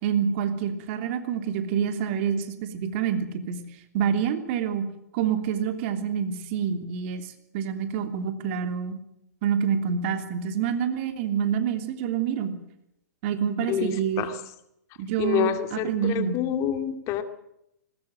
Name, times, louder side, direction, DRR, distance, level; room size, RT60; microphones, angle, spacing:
voice 1, 0.0-3.6 3.9-4.8 5.1-9.0 9.4-12.5 13.2-14.2 15.0-16.4, right 8 dB, 45° right, 7 dB, 3.1 m, -27 dB
voice 2, 13.7-14.3 15.2-17.2, left 9 dB, 30° left, 9 dB, 2.3 m, -27 dB
20.0 x 20.0 x 7.7 m, 0.79 s
figure-of-eight pair, 115°, 9 cm